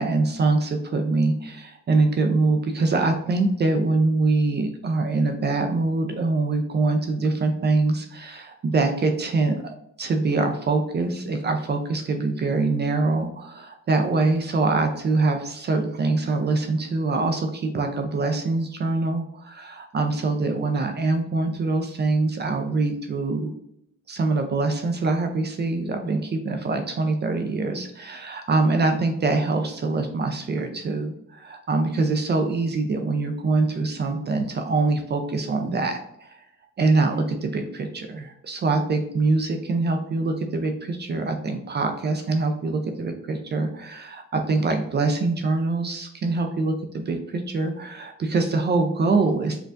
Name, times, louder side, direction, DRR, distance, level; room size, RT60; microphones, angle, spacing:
voice 1, 0.0-23.5 24.1-36.4 36.8-49.6, right 3 dB, 35° right, 5 dB, 0.4 m, -24 dB
4.4 x 2.3 x 2.5 m, 0.73 s
cardioid pair, 90°, 30 cm